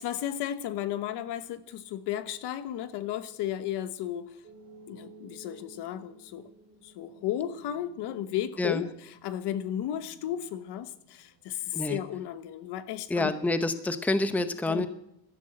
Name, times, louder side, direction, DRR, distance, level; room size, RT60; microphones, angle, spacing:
voice 1, 0.0-4.4 4.9-6.5 6.8-13.3 14.7-14.9, left 11 dB, 70° left, 12 dB, 1.3 m, -34 dB
sound 1, 4.4-11.4, right 2 dB, 30° right, 4.2 m, -55 dB
voice 2, 13.1-14.9, left 2 dB, 5° left, 10 dB, 0.7 m, -27 dB
12.5 x 12.5 x 7.8 m, 0.76 s
cardioid pair, 165°, 42 cm